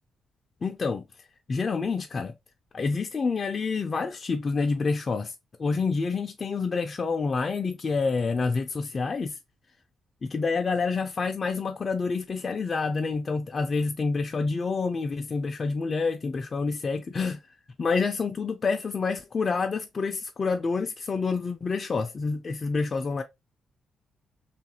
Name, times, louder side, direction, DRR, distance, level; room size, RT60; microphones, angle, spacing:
voice 1, 0.6-1.0 1.5-2.3 2.7-9.4 10.2-23.2, left 4 dB, 40° left, 0.4 m, -28 dB
2.8 x 2.4 x 2.8 m
cardioid pair, 80°, 0 cm